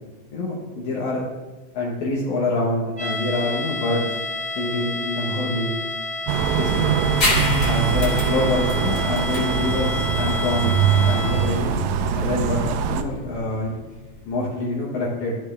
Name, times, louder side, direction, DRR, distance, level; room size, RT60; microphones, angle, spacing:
voice 1, 0.3-1.2 1.7-4.1 4.6-5.8 6.6-6.9 7.6-10.7 11.0-11.8 12.2-13.8 14.3-15.4, left 2 dB, 80° left, -5 dB, 2.6 m, -25 dB
sound 1, 3.0-11.7, left 2 dB, 55° right, 0.6 m, -30 dB
sound 2, 6.3-13.0, right 7 dB, 80° right, 1.9 m, -22 dB
sound 3, 7.2-14.3, left 2 dB, 35° left, 2.0 m, -29 dB
12.0 x 6.0 x 3.2 m, 1.2 s
omnidirectional pair, 3.4 m